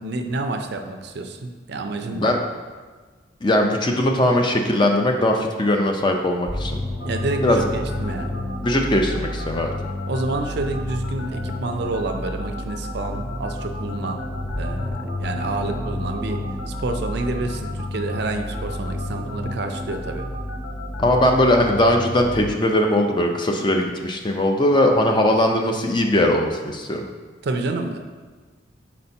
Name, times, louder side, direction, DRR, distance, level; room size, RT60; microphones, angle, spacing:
voice 1, 0.0-2.4 7.0-8.4 10.1-14.2 14.6-20.3 27.4-28.0, right 2 dB, 55° right, 5 dB, 0.5 m, -29 dB
voice 2, 3.4-6.8 7.4-7.6 8.6-9.7 21.0-27.0, left 1 dB, 25° left, 3 dB, 0.4 m, -20 dB
sound 1, 6.5-22.5, left 1 dB, 5° left, 0.9 m, -30 dB
sound 2, 7.0-21.2, left 2 dB, 80° left, 0.7 m, -38 dB
4.3 x 4.3 x 5.3 m, 1.4 s
head